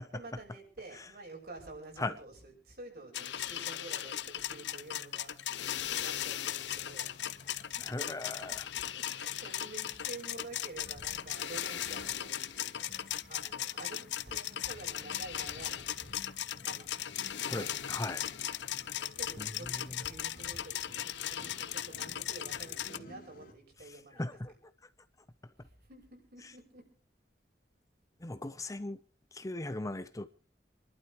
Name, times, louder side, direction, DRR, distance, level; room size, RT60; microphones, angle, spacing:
voice 1, 0.1-5.4 5.8-7.1 7.4-7.9 8.5-15.9 16.6-18.3 19.2-24.3 25.7-27.0, right 2 dB, 60° right, 6.1 m, -50 dB
sound 1, 3.1-23.0, left 11 dB, 85° left, 0.6 m, -37 dB
sound 2, 5.6-23.5, left 1 dB, 55° left, 2.5 m, -55 dB
voice 2, 7.8-8.7 17.5-18.2 19.4-20.0 23.9-24.5 28.2-29.0 29.3-30.3, left 2 dB, 20° left, 0.7 m, -38 dB
27.5 x 12.0 x 3.0 m
head